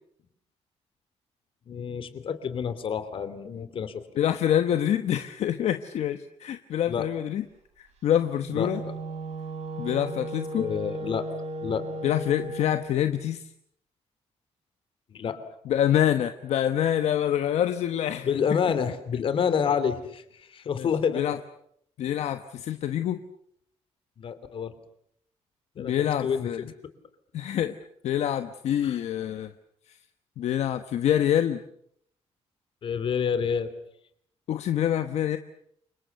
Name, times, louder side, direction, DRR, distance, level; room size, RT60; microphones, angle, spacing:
voice 1, 1.7-4.0 6.9-7.1 8.5-9.0 10.5-11.3 11.6-11.9 15.1-15.4 18.2-21.3 24.2-24.7 25.7-26.5 28.8-29.0 32.8-33.7, left 7 dB, 50° left, 12 dB, 2.9 m, -28 dB
voice 2, 4.2-7.4 7.8-8.8 9.8-10.7 12.0-13.4 15.7-18.3 20.8-20.9 21.1-21.4 22.0-23.2 25.8-26.6 27.3-27.8 28.0-29.5 29.9-30.0 30.4-31.6 34.5-35.4, left 10 dB, 75° left, 9 dB, 1.1 m, -26 dB
Wind instrument woodwind instrument, 8.4-12.9, right 2 dB, 75° right, 4.9 m, -35 dB
29.5 x 25.5 x 6.8 m, 0.70 s
cardioid pair, 160°, 11 cm